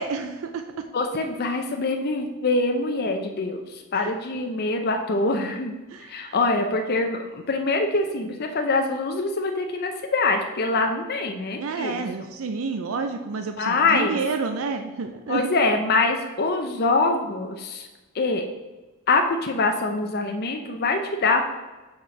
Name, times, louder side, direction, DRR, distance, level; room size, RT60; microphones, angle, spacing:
voice 1, 0.0-0.9 3.9-4.1 5.9-6.4 11.6-15.5, right 4 dB, 65° right, 6 dB, 0.4 m, -29 dB
voice 2, 0.9-5.7 6.0-12.0 13.6-14.2 15.3-17.9 18.1-18.4 19.1-21.4, left 3 dB, 45° left, 4 dB, 0.5 m, -24 dB
6.0 x 4.2 x 4.8 m, 1.1 s
head